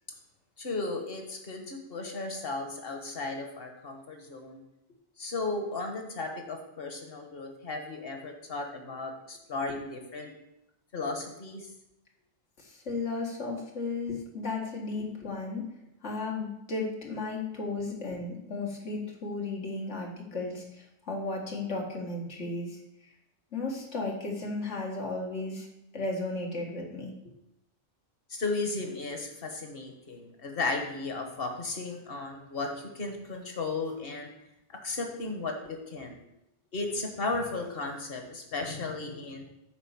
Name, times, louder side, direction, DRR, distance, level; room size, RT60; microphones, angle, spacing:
voice 1, 0.6-4.6 5.2-10.3 10.9-11.7 28.3-34.3 34.8-36.2 36.7-39.5, left 3 dB, 55° left, 4 dB, 1.6 m, -35 dB
voice 2, 12.6-15.7 16.0-23.1 23.5-25.7 25.9-27.1, left 3 dB, 80° left, -1 dB, 2.1 m, -34 dB
10.0 x 4.2 x 7.2 m, 0.85 s
omnidirectional pair, 1.2 m